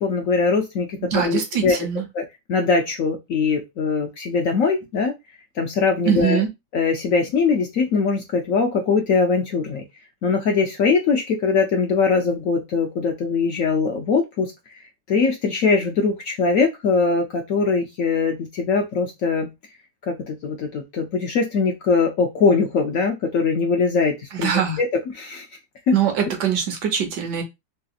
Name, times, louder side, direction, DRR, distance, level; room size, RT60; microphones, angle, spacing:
voice 1, 0.0-1.8 2.1-5.1 5.6-6.4 6.7-9.8 10.2-14.5 15.1-19.5 20.0-24.5 24.8-25.5 25.9-26.0, left 4 dB, 65° left, 2 dB, 0.8 m, -21 dB
voice 2, 1.0-2.0 6.1-6.5 24.3-24.8 25.9-27.4, right 8 dB, 75° right, 5 dB, 1.3 m, -22 dB
3.2 x 2.8 x 2.3 m, 0.21 s
omnidirectional pair, 1.9 m